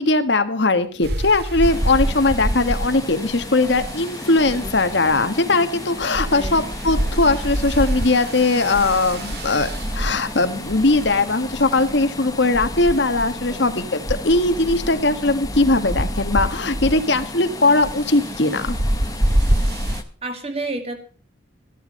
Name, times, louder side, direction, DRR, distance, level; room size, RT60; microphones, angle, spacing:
voice 1, 0.0-18.8, left 2 dB, 65° left, 10 dB, 1.5 m, -19 dB
sound 1, 1.0-20.0, right 1 dB, 55° right, 2.0 m, -27 dB
sound 2, 1.6-20.0, left 2 dB, 20° left, 0.9 m, -35 dB
voice 2, 6.3-6.8 13.4-13.7 20.2-21.0, right 2 dB, 30° right, 6 dB, 2.1 m, -31 dB
14.0 x 12.0 x 5.3 m, 0.39 s
head